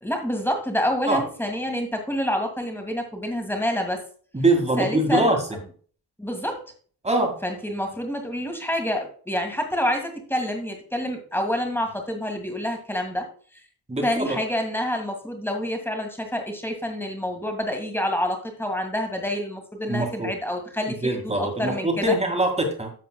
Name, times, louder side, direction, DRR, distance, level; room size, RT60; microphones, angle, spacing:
voice 1, 0.0-4.0 4.8-5.3 6.2-6.6 7.4-13.3 13.5-13.6 14.0-22.2, equal, 5° left, 4 dB, 1.8 m, -27 dB
voice 2, 4.3-5.4 7.0-7.4 13.9-14.4 19.9-20.3 21.0-22.9, right 1 dB, 15° right, 3 dB, 1.9 m, -23 dB
11.5 x 7.5 x 2.2 m, 0.44 s
wide cardioid pair, 180°, 40 cm